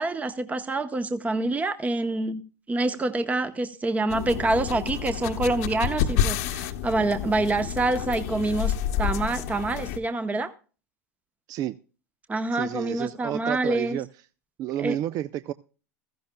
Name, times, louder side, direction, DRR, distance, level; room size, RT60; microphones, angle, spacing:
voice 1, 0.0-2.4 2.7-10.5 12.3-14.0 14.8-15.0, right 2 dB, 15° right, 0.9 m, -26 dB
sound 1, 4.1-10.0, left 9 dB, 70° left, 1.0 m, -29 dB
voice 2, 12.5-14.1 14.6-15.5, right 12 dB, 45° right, 0.5 m, -30 dB
15.5 x 14.5 x 2.2 m
hypercardioid pair, 90°, 9 cm